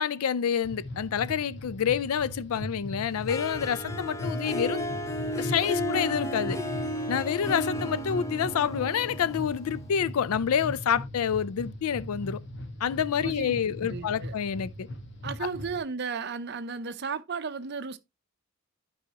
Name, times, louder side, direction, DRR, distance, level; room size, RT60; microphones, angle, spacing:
voice 1, 0.0-4.8 5.4-6.6 7.1-12.4 12.8-14.9, left 8 dB, 80° left, 0.4 m, -28 dB
sound 1, 0.6-15.8, left 1 dB, 55° left, 1.4 m, -39 dB
Harp, 3.3-10.2, left 1 dB, 15° left, 0.6 m, -33 dB
voice 2, 13.2-14.3 15.2-18.0, right 5 dB, 50° right, 0.6 m, -34 dB
11.0 x 4.8 x 2.8 m
head